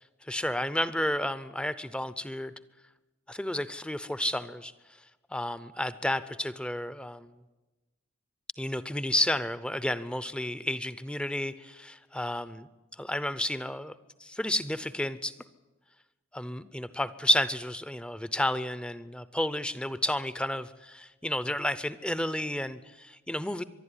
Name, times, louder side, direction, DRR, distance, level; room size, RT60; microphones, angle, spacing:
voice 1, 0.2-2.5 3.3-4.7 5.3-7.3 8.6-12.7 13.0-13.9 14.2-15.3 16.3-23.6, left 1 dB, 5° left, 15 dB, 0.6 m, -31 dB
24.0 x 11.5 x 9.8 m, 1.1 s
head